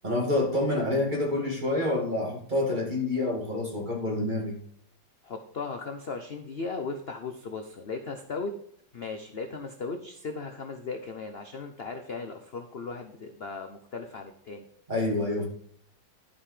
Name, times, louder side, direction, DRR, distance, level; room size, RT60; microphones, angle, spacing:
voice 1, 0.0-4.6 14.9-15.5, left 2 dB, 25° right, -1 dB, 2.6 m, -27 dB
voice 2, 5.2-8.5 8.9-14.7, left 4 dB, 50° left, 5 dB, 0.8 m, -37 dB
12.0 x 5.6 x 4.9 m, 0.63 s
omnidirectional pair, 2.1 m